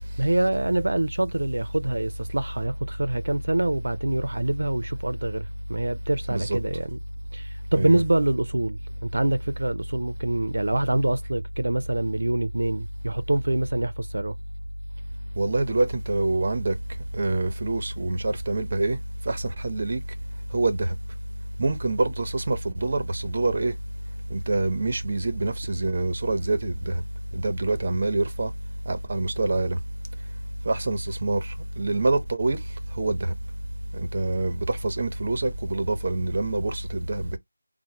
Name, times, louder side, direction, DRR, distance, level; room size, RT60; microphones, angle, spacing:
voice 1, 0.2-7.0 7.3-14.4, right 2 dB, 80° right, 0.4 m, -25 dB
voice 2, 15.4-16.7 17.1-19.0 19.3-20.0 20.5-20.9 21.6-23.7 24.3-27.0 27.3-28.5 28.9-29.8 30.7-32.6 33.0-33.3 33.9-37.4, right 2 dB, 35° right, 0.7 m, -26 dB
4.5 x 2.1 x 2.8 m
figure-of-eight pair, 175°, 0 cm